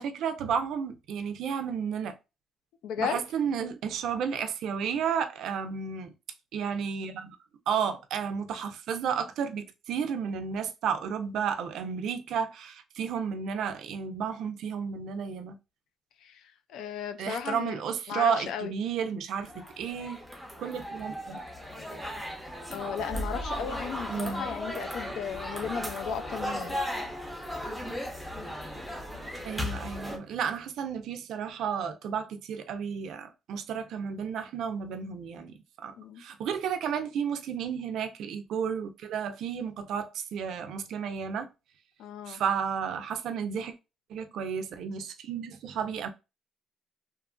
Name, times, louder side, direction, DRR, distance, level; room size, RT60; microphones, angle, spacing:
voice 1, 0.0-2.1 3.0-6.1 6.5-7.4 7.7-15.6 17.2-20.2 20.6-21.4 24.1-24.5 29.4-41.5 42.3-43.7 44.1-46.1, right 7 dB, 70° right, 0.4 m, -32 dB
voice 2, 2.8-3.2 16.2-17.8 18.1-18.7 22.7-26.8 36.0-36.2 42.0-42.4, left 7 dB, 85° left, 0.3 m, -35 dB
sound 1, 19.4-30.2, left 1 dB, ahead, 0.5 m, -36 dB
2.8 x 2.4 x 2.2 m
cardioid pair, 155°, 0 cm